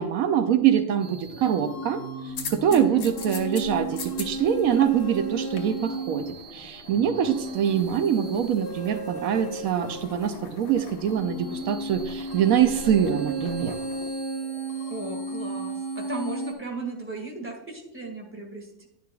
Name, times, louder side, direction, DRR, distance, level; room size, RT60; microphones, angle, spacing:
voice 1, 0.0-13.8, right 9 dB, 80° right, 8 dB, 1.1 m, -24 dB
sound 1, 1.0-16.5, right 2 dB, 15° left, 2.0 m, -35 dB
sound 2, 2.3-14.1, left 5 dB, 90° left, 1.6 m, -42 dB
voice 2, 2.7-3.1 14.9-18.9, right 3 dB, 10° right, 1 dB, 1.8 m, -36 dB
11.0 x 10.0 x 2.3 m, 0.86 s
omnidirectional pair, 1.4 m